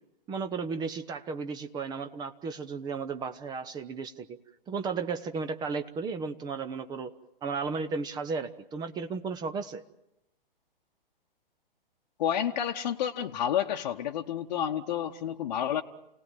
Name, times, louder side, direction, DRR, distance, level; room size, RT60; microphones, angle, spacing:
voice 1, 0.3-4.3 4.7-7.1 7.4-9.8, right 5 dB, 15° right, 9 dB, 0.8 m, -34 dB
voice 2, 12.2-15.8, left 9 dB, 45° left, 1 dB, 1.1 m, -30 dB
29.0 x 18.0 x 9.1 m, 0.89 s
figure-of-eight pair, 125°, 29 cm